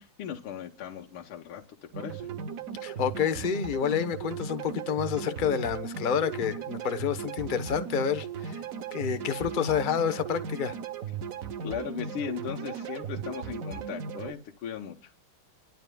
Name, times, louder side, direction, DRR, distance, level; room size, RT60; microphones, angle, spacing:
voice 1, 0.0-1.6 1.9-2.3 11.6-15.1, left 9 dB, 80° left, 1.8 m, -37 dB
sound 1, 1.9-14.3, right 7 dB, 55° right, 1.0 m, -37 dB
voice 2, 2.8-8.6 8.9-10.8, left 8 dB, 45° left, 0.6 m, -29 dB
27.0 x 12.5 x 2.3 m
omnidirectional pair, 2.4 m